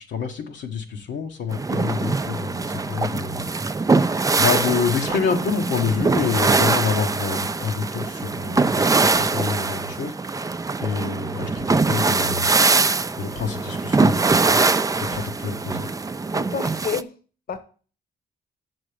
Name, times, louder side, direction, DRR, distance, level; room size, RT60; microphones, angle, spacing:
voice 1, 0.1-3.5 4.1-10.1 10.8-12.5 13.2-14.2 14.5-14.6 15.0-15.9, left 6 dB, 75° left, 2 dB, 1.0 m, -27 dB
sound 1, 1.5-17.0, right 3 dB, 20° right, 0.4 m, -22 dB
voice 2, 16.3-17.1 17.5-17.6, left 6 dB, 50° left, 11 dB, 1.0 m, -29 dB
6.7 x 6.1 x 4.9 m, 0.39 s
supercardioid pair, 55°, 19 cm